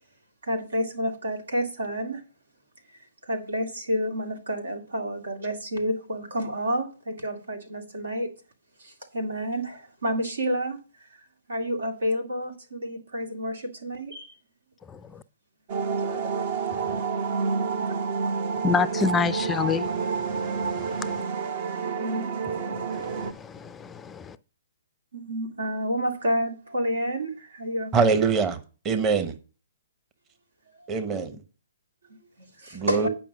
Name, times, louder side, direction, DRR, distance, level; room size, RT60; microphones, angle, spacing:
voice 1, 0.5-2.2 3.3-8.3 9.1-9.6 10.0-10.8 11.5-13.5 13.8-14.1 16.1-16.2 22.0-22.3 25.1-27.3 27.6-28.1 32.9-33.0, equal, 80° right, 2.2 m, -29 dB
voice 2, 14.9-15.2 16.8-17.1 18.6-19.9 20.3-21.2 22.7-24.4, left 6 dB, 15° left, 0.4 m, -29 dB
sound 1, 15.7-23.3, right 5 dB, 50° right, 0.9 m, -29 dB
voice 3, 27.9-29.3 30.9-31.3 32.7-33.1, right 5 dB, 20° right, 1.1 m, -24 dB
9.2 x 5.4 x 6.0 m
hypercardioid pair, 130°, 0 cm